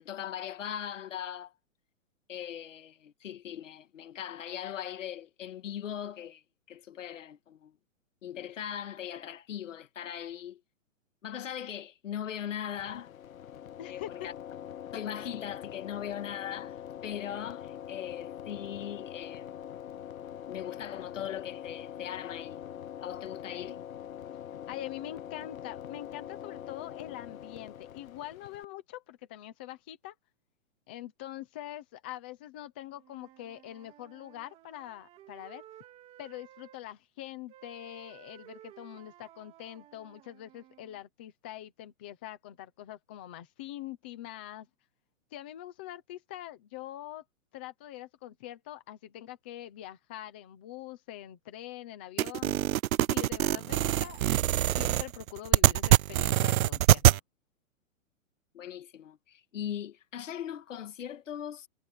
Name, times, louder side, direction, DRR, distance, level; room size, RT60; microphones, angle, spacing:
voice 1, 0.0-1.5 2.3-7.8 8.2-10.6 11.2-13.1 13.9-14.3 14.9-16.8 17.0-19.8 20.5-22.6 23.0-23.8 58.5-61.7, left 10 dB, 65° left, 1.8 m, -39 dB
sound 1, 12.7-28.6, left 10 dB, 85° left, 1.1 m, -43 dB
voice 2, 13.8-14.3 24.7-30.1 30.9-35.6 36.2-44.7 45.3-47.2 47.5-52.6 53.1-57.0, left 13 dB, 10° left, 0.6 m, -44 dB
Wind instrument woodwind instrument, 32.9-36.8 37.5-41.0, right 13 dB, 15° right, 2.7 m, -55 dB
sound 2, 52.2-57.2, right 13 dB, 85° right, 0.6 m, -24 dB
hypercardioid pair, 175°, 40 cm